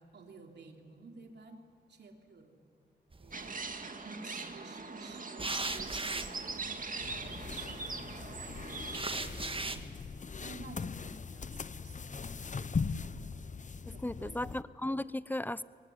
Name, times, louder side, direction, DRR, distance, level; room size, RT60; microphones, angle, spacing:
voice 1, 0.0-1.6 1.9-2.6 3.2-6.4 6.7-10.0 10.4-12.2 13.9-14.6, right 3 dB, 70° right, 3 dB, 3.0 m, -53 dB
sound 1, 3.1-3.7 5.4-7.4 8.9-9.9, right 3 dB, 30° right, 1.7 m, -38 dB
sound 2, 3.3-9.0, right 4 dB, 45° right, 2.2 m, -41 dB
sound 3, 7.0-14.6, left 5 dB, 40° left, 0.8 m, -40 dB
voice 2, 13.8-15.6, left 1 dB, 10° left, 18 dB, 0.8 m, -36 dB
23.5 x 19.5 x 9.9 m, 2.1 s
cardioid pair, 45°, 18 cm